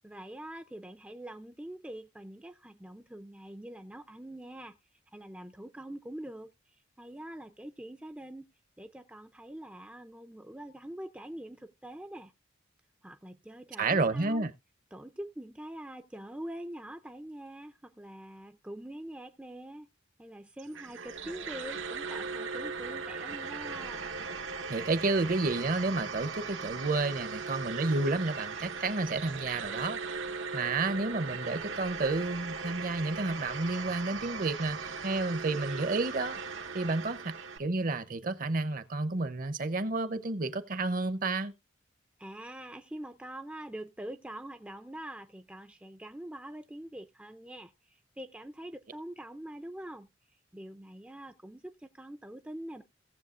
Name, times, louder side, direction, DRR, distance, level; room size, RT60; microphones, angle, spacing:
voice 1, 0.0-4.8 5.1-6.5 7.0-8.5 8.8-12.3 13.0-14.5 14.9-19.9 20.2-24.1 42.2-50.1 50.5-52.8, right 1 dB, 5° right, 0.4 m, -44 dB
voice 2, 13.8-14.5 24.7-30.0 30.5-36.4 36.7-41.5, right 3 dB, 45° right, 0.7 m, -31 dB
sound 1, 20.6-37.6, right 5 dB, 90° right, 1.2 m, -38 dB
17.5 x 7.2 x 2.5 m
head